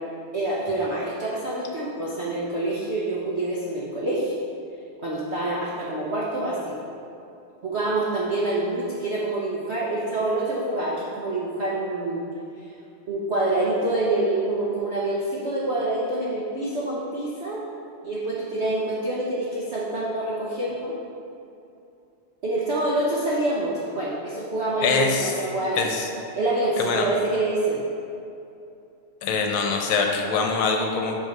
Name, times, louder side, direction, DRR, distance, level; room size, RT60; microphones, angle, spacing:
voice 1, 0.3-4.3 5.0-6.9 7.6-12.2 12.6-12.7 13.1-17.6 18.0-20.9 22.4-25.9 26.4-27.8, right 2 dB, 75° right, -5 dB, 0.6 m, -26 dB
voice 2, 24.8-25.3 25.8-26.1 26.8-27.1 29.2-31.2, left 4 dB, 75° left, 2 dB, 1.5 m, -23 dB
7.8 x 3.9 x 5.3 m, 2.7 s
omnidirectional pair, 2.4 m